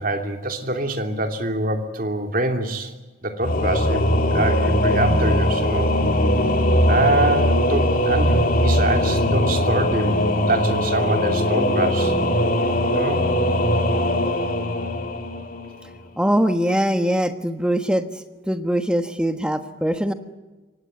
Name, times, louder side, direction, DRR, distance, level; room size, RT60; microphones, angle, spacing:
voice 1, 0.0-2.9 3.2-5.9 6.9-10.2 10.5-12.1 12.9-13.2, right 2 dB, 45° right, 5 dB, 3.0 m, -25 dB
Singing / Musical instrument, 3.4-16.0, left 1 dB, 45° left, 2.7 m, -20 dB
voice 2, 16.2-18.0 18.5-20.1, equal, 5° right, 8 dB, 1.3 m, -22 dB
24.0 x 18.5 x 9.3 m, 1.2 s
head